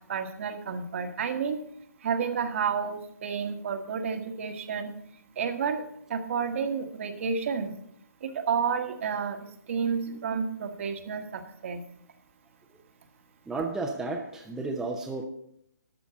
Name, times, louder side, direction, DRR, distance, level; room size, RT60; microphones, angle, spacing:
voice 1, 0.1-1.6 2.0-4.9 5.4-5.8 6.1-7.7 8.2-9.4 9.7-11.8, right 6 dB, 45° right, 7 dB, 1.4 m, -30 dB
voice 2, 13.5-15.2, right 3 dB, 5° right, 1 dB, 0.7 m, -32 dB
12.5 x 5.2 x 7.6 m, 0.71 s
hypercardioid pair, 155°, 10 cm